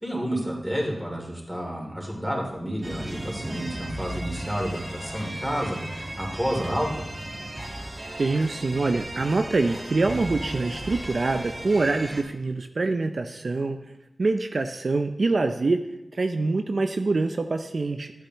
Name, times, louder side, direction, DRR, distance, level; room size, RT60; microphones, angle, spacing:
voice 1, 0.0-6.9, equal, ahead, -2 dB, 3.0 m, -30 dB
sound 1, 2.8-12.2, right 1 dB, 45° right, 1.6 m, -36 dB
voice 2, 8.2-13.8 14.2-18.1, right 3 dB, 65° right, 6 dB, 0.5 m, -25 dB
11.5 x 8.7 x 3.0 m, 0.89 s
wide cardioid pair, 60°, 0 cm